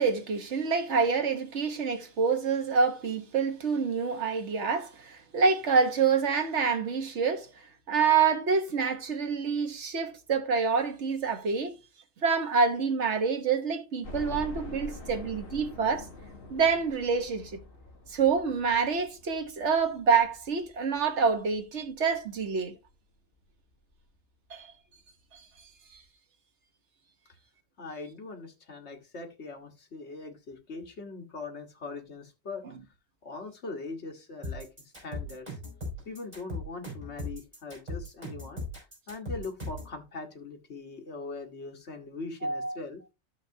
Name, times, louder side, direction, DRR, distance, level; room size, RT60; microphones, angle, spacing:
voice 1, 0.0-11.7 12.2-16.1 16.5-17.5 18.1-22.7 24.5-24.7 25.3-25.4 25.9-26.0 42.4-42.8, right 5 dB, 90° right, 1.5 m, -27 dB
sound 1, 14.0-22.9 23.4-23.5 23.9-24.0 25.2-25.3 25.6-25.7, left 2 dB, 55° left, 1.6 m, -45 dB
voice 2, 27.8-32.7 33.2-35.6 36.1-38.6 39.1-43.0, left 3 dB, 75° left, 1.7 m, -41 dB
sound 2, 34.4-39.9, left 2 dB, 35° right, 5.8 m, -38 dB
13.0 x 5.8 x 2.7 m
omnidirectional pair, 1.1 m